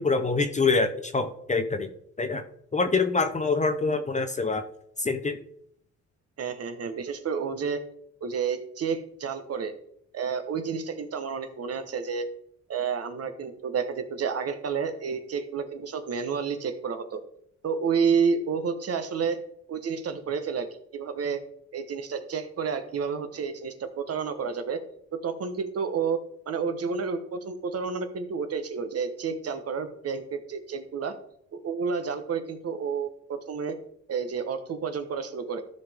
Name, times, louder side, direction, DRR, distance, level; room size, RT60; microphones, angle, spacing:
voice 1, 0.0-1.9 2.2-2.4 2.7-4.6 5.0-5.4, left 4 dB, 25° left, 8 dB, 0.7 m, -25 dB
voice 2, 6.4-7.8 8.2-9.7 10.1-12.3 12.7-17.2 17.6-19.4 19.7-20.7 20.9-21.4 21.7-24.8 25.2-26.2 26.5-31.2 31.5-33.8 34.1-35.6, right 6 dB, 55° right, 9 dB, 1.1 m, -30 dB
13.5 x 5.3 x 3.5 m, 0.71 s
cardioid pair, 90°, 30 cm